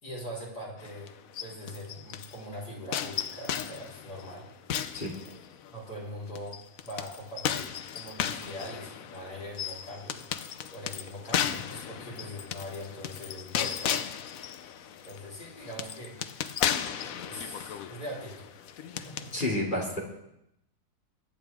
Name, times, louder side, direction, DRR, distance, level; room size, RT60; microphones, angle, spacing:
voice 1, 0.0-1.1 1.4-4.5 5.1-5.3 5.7-10.2 10.7-14.1 15.0-16.2 16.8-18.4 18.8-19.3, equal, 90° left, -6 dB, 4.8 m, -42 dB
sound 1, 0.8-2.4 2.9-5.8 6.4-19.4, left 9 dB, 65° left, 1.0 m, -35 dB
voice 2, 19.3-20.0, left 1 dB, 30° left, -3 dB, 2.9 m, -29 dB
23.0 x 9.2 x 3.6 m, 0.82 s
omnidirectional pair, 1.6 m